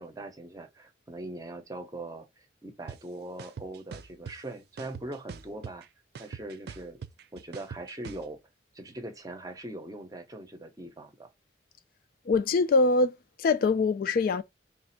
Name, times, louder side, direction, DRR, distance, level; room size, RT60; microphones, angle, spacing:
voice 1, 0.0-5.9 6.2-7.0 7.3-8.4 8.7-11.3, right 1 dB, 20° right, 0.6 m, -41 dB
sound 1, 2.9-3.0 3.4-4.4 4.8-5.8 6.1-8.2, right 6 dB, 60° right, 0.4 m, -41 dB
voice 2, 12.3-14.4, left 3 dB, 50° left, 0.3 m, -24 dB
3.5 x 2.5 x 4.2 m
head